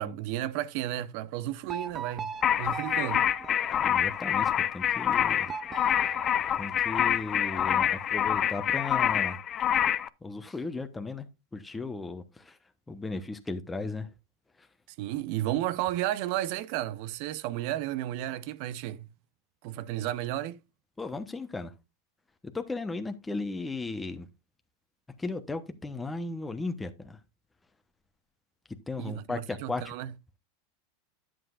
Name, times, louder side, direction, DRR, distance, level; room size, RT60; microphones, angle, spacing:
voice 1, 0.0-2.3 2.6-3.3 15.0-19.1 19.6-20.6 29.0-30.1, right 14 dB, 60° right, 0.6 m, -33 dB
sound 1, 1.7-4.4 5.5-7.2, right 6 dB, 25° right, 0.7 m, -41 dB
sound 2, 2.4-10.1, left 10 dB, 35° left, 0.5 m, -26 dB
voice 2, 3.7-5.5 6.0-6.1 6.6-9.4 10.2-12.6 12.9-14.1 14.6-14.7 21.0-21.7 22.4-24.3 25.2-27.2 28.9-29.9, left 3 dB, 10° left, 1.0 m, -36 dB
11.0 x 7.6 x 2.5 m
hypercardioid pair, 110°, 0 cm